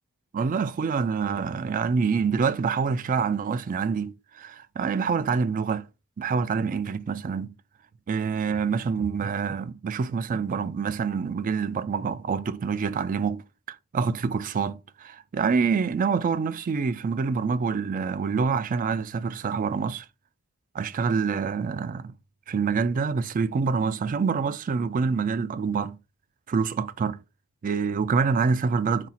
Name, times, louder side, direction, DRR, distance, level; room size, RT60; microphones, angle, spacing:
voice 1, 0.3-5.9 6.2-7.5 8.1-20.1 20.7-22.1 22.5-26.0 26.5-27.2 27.6-29.1, right 5 dB, 40° right, 0.3 m, -26 dB
4.0 x 2.4 x 4.0 m
head